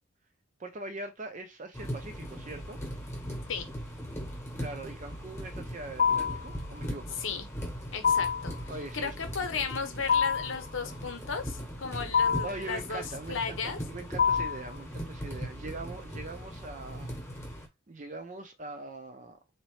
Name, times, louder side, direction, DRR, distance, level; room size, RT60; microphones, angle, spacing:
voice 1, 0.6-2.8 4.6-7.2 8.7-9.2 12.4-17.2 17.9-19.4, right 2 dB, 35° right, 0.6 m, -42 dB
sound 1, 1.7-17.7, equal, 15° left, 1.0 m, -39 dB
sound 2, 6.0-6.5 8.0-8.5 10.1-10.6 12.1-12.6 14.2-14.7, left 6 dB, 40° left, 0.3 m, -25 dB
voice 2, 7.9-8.5 8.9-13.8, left 5 dB, 70° left, 0.8 m, -35 dB
4.1 x 2.8 x 3.1 m
head